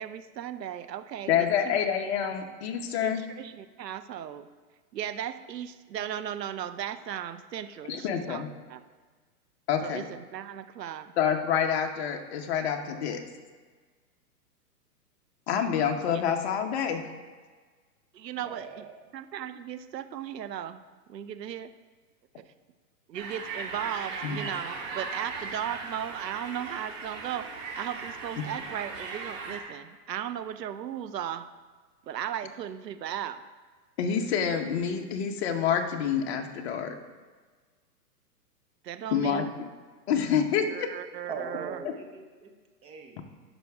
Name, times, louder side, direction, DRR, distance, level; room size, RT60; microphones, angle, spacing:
voice 1, 0.0-1.8 2.2-2.3 3.0-4.5 4.9-8.4 8.7-8.8 9.8-11.2 18.1-18.6 19.1-20.8 21.1-21.7 23.1-31.5 32.1-33.4 38.8-39.5 40.5-41.8, right 10 dB, 85° right, 12 dB, 0.8 m, -36 dB
voice 2, 1.3-3.2 7.9-8.5 9.7-10.1 11.2-13.2 15.5-17.1 24.2-24.4 28.4-28.5 34.0-36.9 39.1-39.4 40.1-40.9, left 8 dB, 40° left, 5 dB, 1.1 m, -27 dB
voice 3, 18.4-19.0 41.3-42.5 42.8-43.2, right 5 dB, 10° right, 2 dB, 0.6 m, -40 dB
sound 1, 23.1-29.6, right 4 dB, 50° right, 2.3 m, -38 dB
13.0 x 5.8 x 3.6 m, 1.4 s
hypercardioid pair, 140°, 48 cm